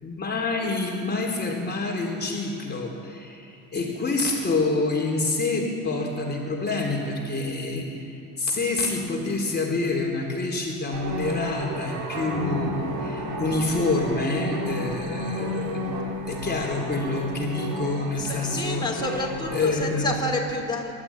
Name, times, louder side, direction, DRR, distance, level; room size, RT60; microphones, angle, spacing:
voice 1, 0.0-18.8 19.5-20.1, left 3 dB, 25° left, -2 dB, 3.8 m, -27 dB
sound 1, 10.9-19.6, equal, 75° right, 3.6 m, -32 dB
voice 2, 18.2-20.9, left 2 dB, 10° left, -2 dB, 4.0 m, -29 dB
26.5 x 13.0 x 8.9 m, 3.0 s
cardioid pair, 105°, 37 cm